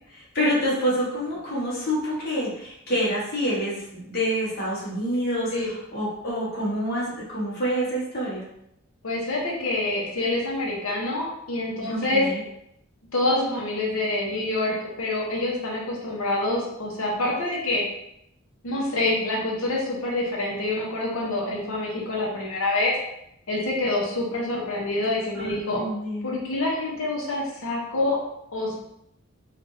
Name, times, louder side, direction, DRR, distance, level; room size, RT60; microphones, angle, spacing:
voice 1, 0.1-8.5 11.8-12.4 25.3-26.3, equal, 50° left, -7 dB, 1.2 m, -27 dB
voice 2, 9.0-12.2 13.1-17.8 18.6-22.9 23.5-25.8 26.2-28.2 28.5-28.7, left 2 dB, 75° left, -3 dB, 0.9 m, -26 dB
3.3 x 2.5 x 2.7 m, 0.79 s
head